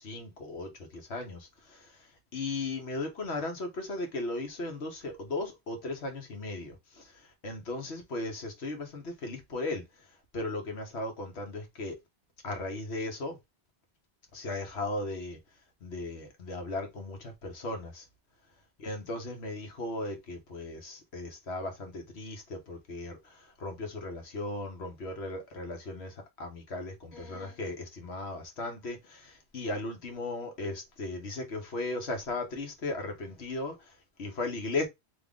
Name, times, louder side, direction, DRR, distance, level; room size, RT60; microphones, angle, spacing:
voice 1, 0.0-9.8 10.3-12.0 12.4-13.4 14.3-15.4 15.8-18.0 18.8-34.9, left 2 dB, 85° left, 1.4 m, -37 dB
3.6 x 3.0 x 3.7 m
omnidirectional pair, 1.1 m